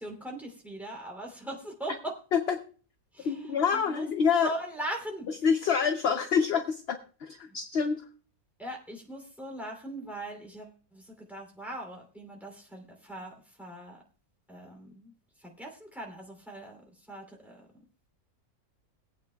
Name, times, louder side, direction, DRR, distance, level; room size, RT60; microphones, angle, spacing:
voice 1, 0.0-2.1 3.1-4.1 4.4-5.3 8.6-14.0 14.5-15.1 15.6-16.8 17.1-17.6, right 1 dB, ahead, 1 dB, 2.8 m, -40 dB
voice 2, 3.2-4.5 5.3-8.0, left 6 dB, 55° left, 7 dB, 0.8 m, -27 dB
21.5 x 8.6 x 2.3 m, 0.39 s
omnidirectional pair, 1.6 m